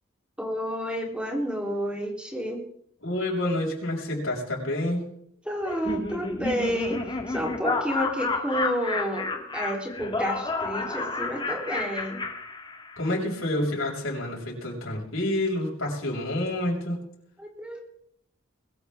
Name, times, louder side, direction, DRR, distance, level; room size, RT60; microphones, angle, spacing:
voice 1, 0.4-2.6 5.4-12.2 17.4-17.8, equal, 5° right, 0 dB, 3.5 m, -30 dB
voice 2, 3.0-5.0 13.0-17.0, left 1 dB, 70° left, -2 dB, 6.3 m, -28 dB
Laughter, 5.6-13.1, left 3 dB, 20° left, 1.9 m, -31 dB
22.0 x 14.0 x 3.6 m, 0.70 s
head